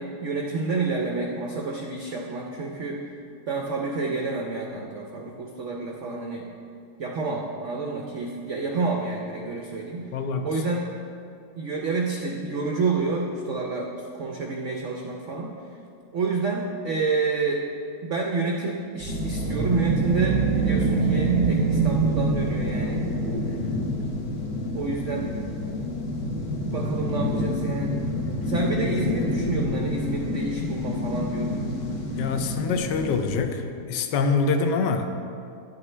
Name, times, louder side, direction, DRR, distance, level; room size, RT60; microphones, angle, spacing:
voice 1, 0.0-3.1 3.5-6.5 7.0-10.1 10.4-10.9 11.5-15.5 16.1-17.6 18.0-23.1 24.7-25.3 26.7-28.0 28.4-31.7, right 3 dB, 65° right, 0 dB, 0.7 m, -29 dB
voice 2, 10.1-10.5 23.4-23.9 32.1-35.1, left 4 dB, 70° left, 6 dB, 1.2 m, -25 dB
sound 1, 19.0-23.4, right 5 dB, 80° right, 1.3 m, -25 dB
sound 2, 19.1-33.4, left 2 dB, 50° left, 1.0 m, -29 dB
10.5 x 8.3 x 3.3 m, 2.5 s
omnidirectional pair, 2.1 m